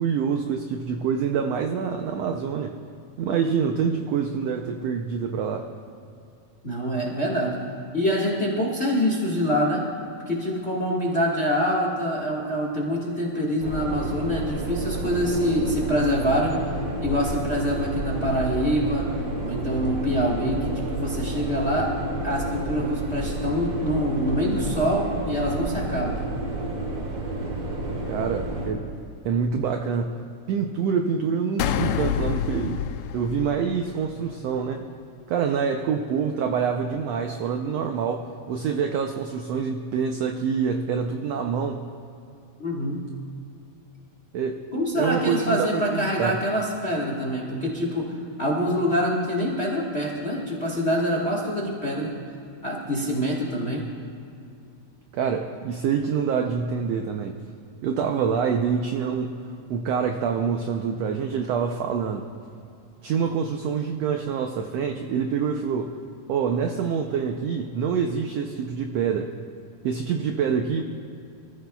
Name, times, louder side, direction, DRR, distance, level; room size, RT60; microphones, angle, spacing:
voice 1, 0.0-2.8 3.2-5.7 28.0-28.9 29.2-32.9 33.1-34.9 35.3-41.9 44.3-44.7 44.9-46.4 55.1-57.4 57.8-62.3 63.0-66.0 66.3-69.3 69.8-70.8, right 6 dB, 85° right, 4 dB, 1.4 m, -26 dB
voice 2, 6.6-7.6 7.9-9.9 10.3-16.5 17.0-19.1 19.4-21.9 22.2-26.3 42.6-43.0 44.7-52.1 52.6-53.8, equal, 30° left, -3 dB, 1.2 m, -25 dB
sound 1, 13.6-28.7, right 1 dB, 60° right, 3.2 m, -30 dB
sound 2, 31.6-34.2, left 9 dB, 85° left, 2.2 m, -27 dB
25.5 x 14.5 x 2.3 m, 2.5 s
omnidirectional pair, 3.7 m